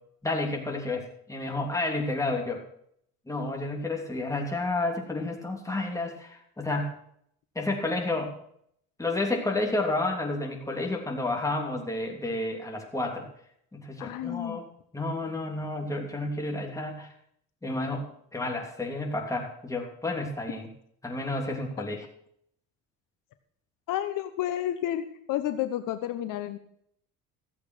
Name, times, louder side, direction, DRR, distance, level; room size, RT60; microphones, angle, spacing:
voice 1, 0.2-2.6 3.3-7.0 7.5-8.3 9.0-13.3 13.7-14.7 14.9-17.1 17.6-20.7 21.0-22.0, left 2 dB, 10° left, 1 dB, 3.0 m, -31 dB
voice 2, 14.0-14.6 23.9-25.0 25.3-26.6, left 12 dB, 65° left, 9 dB, 1.1 m, -30 dB
15.0 x 8.2 x 6.3 m, 0.68 s
cardioid pair, 125°, 34 cm